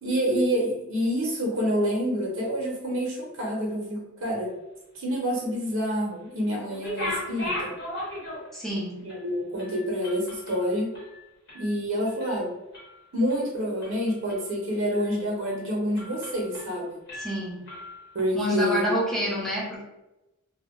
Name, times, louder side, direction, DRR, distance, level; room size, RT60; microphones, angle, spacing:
voice 1, 0.0-4.5 4.9-7.7 9.0-10.9 11.5-12.5 13.1-17.0 18.1-18.9, equal, 75° right, -2 dB, 0.7 m, -27 dB
sound 1, 6.7-8.7 9.1-9.2 9.6-11.7 12.1-12.4 12.7-13.4 13.8-14.5 14.9-15.1 15.5-15.6 16.0-16.8 17.1-18.2, left 1 dB, 50° left, 0.8 m, -37 dB
voice 2, 8.5-9.0 17.2-17.6 18.3-19.8, equal, ahead, -5 dB, 0.5 m, -28 dB
2.2 x 2.1 x 3.4 m, 0.96 s
head